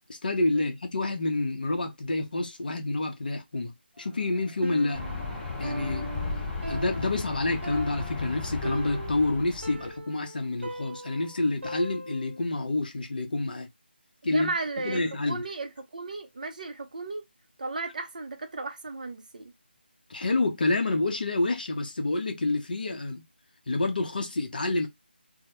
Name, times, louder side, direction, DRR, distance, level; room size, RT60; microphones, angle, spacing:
voice 1, 0.1-5.0 5.6-6.1 6.7-13.7 14.2-14.5 14.8-15.4 20.1-23.2 23.7-24.9, left 2 dB, 55° left, 0.6 m, -28 dB
sound 1, 3.9-9.9, right 2 dB, 5° right, 1.0 m, -54 dB
Piano, 4.6-12.5, right 1 dB, 85° right, 0.6 m, -40 dB
sound 2, 4.9-9.9, left 4 dB, 20° left, 0.9 m, -35 dB
voice 2, 14.3-17.2 17.6-19.5, right 3 dB, 45° right, 0.5 m, -35 dB
2.1 x 2.0 x 2.9 m
figure-of-eight pair, 165°, 6 cm